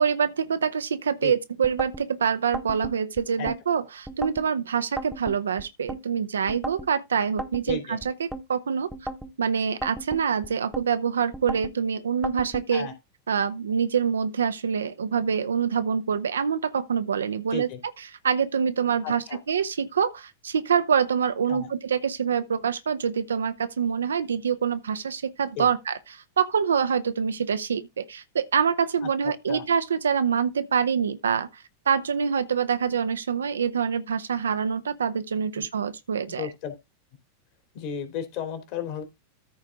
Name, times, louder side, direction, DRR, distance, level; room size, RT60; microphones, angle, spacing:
voice 1, 0.0-8.9 9.4-12.9 13.3-17.7 18.1-36.5, right 7 dB, 70° right, 0.9 m, -25 dB
sound 1, 1.6-2.0 2.5-3.6 4.1-4.5 5.0-6.0 6.5-6.9 7.4-8.4 8.9-9.3 9.8-10.9 11.3-11.7 12.2-12.7, right 1 dB, ahead, 1.3 m, -35 dB
voice 2, 7.7-8.0 12.7-12.9 17.5-17.8 19.0-19.4 21.5-21.7 25.6-25.7 29.0-29.1 29.5-29.6 35.6-35.7 36.3-36.7 37.7-39.0, left 7 dB, 45° left, 3.0 m, -33 dB
13.5 x 4.8 x 3.7 m
figure-of-eight pair, 90°, 0 cm